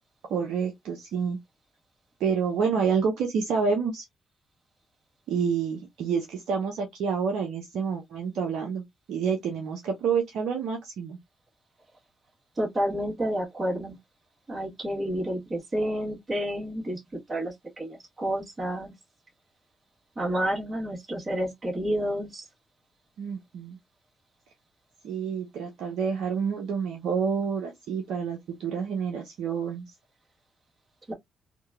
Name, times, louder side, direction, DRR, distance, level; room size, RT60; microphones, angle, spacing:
voice 1, 0.3-1.4 2.2-4.0 5.3-8.8 9.1-11.2 23.2-23.8 25.0-29.8, right 6 dB, 70° right, 0.5 m, -28 dB
voice 2, 12.6-14.0 14.5-17.0 17.3-18.9 20.2-22.5 31.1-31.2, equal, 35° right, 1.3 m, -30 dB
2.9 x 2.1 x 2.3 m
hypercardioid pair, 45°, 0 cm